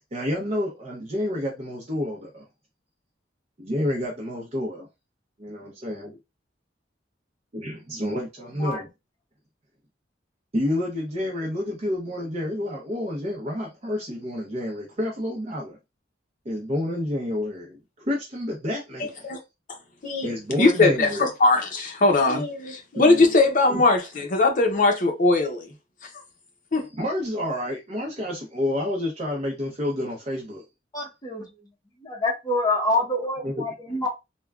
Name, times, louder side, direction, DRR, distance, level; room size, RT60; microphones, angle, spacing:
voice 1, 0.1-2.4 3.6-4.9 5.4-6.1 7.5-8.9 10.5-15.8 16.4-19.3 20.2-21.3 22.9-23.3 23.7-23.8 26.9-30.6 33.4-33.6, left 1 dB, 35° right, 0.7 m, -29 dB
voice 2, 20.6-25.7 26.7-26.9, left 2 dB, 45° left, 0.7 m, -20 dB
voice 3, 30.9-31.5 32.0-34.1, left 2 dB, 20° left, 0.9 m, -26 dB
3.3 x 2.2 x 2.3 m
head